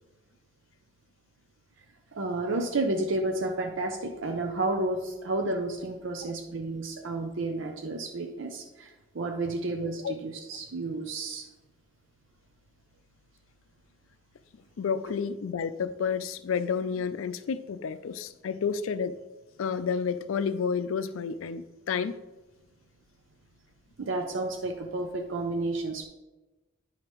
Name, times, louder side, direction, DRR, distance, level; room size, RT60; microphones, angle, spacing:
voice 1, 2.1-8.9 9.1-11.4 24.0-26.0, right 2 dB, 70° right, 4 dB, 0.6 m, -31 dB
voice 2, 14.8-19.2 19.6-22.1, left 6 dB, 85° left, 13 dB, 0.4 m, -30 dB
9.6 x 5.7 x 3.0 m, 1.1 s
head